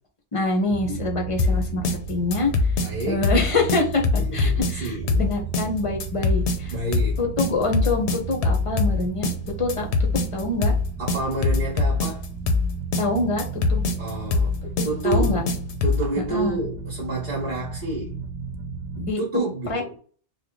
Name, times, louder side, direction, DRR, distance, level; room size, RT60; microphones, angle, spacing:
voice 1, 0.3-2.5 3.1-6.7 7.2-9.3 9.6-9.9 10.1-10.7 13.0-13.8 14.8-15.4 16.2-16.6 19.0-19.2 19.7-19.8, left 2 dB, 35° left, 0.8 m, -25 dB
sound 1, 0.7-19.1, right 6 dB, 90° right, 0.9 m, -34 dB
sound 2, 1.4-16.1, left 3 dB, 75° left, 0.9 m, -23 dB
voice 2, 2.8-3.3 4.2-5.2 6.7-7.2 11.0-12.3 14.0-14.6 14.8-15.5 15.8-18.2 19.0-19.9, right 2 dB, 50° right, 1.2 m, -29 dB
3.0 x 2.3 x 3.6 m
omnidirectional pair, 1.1 m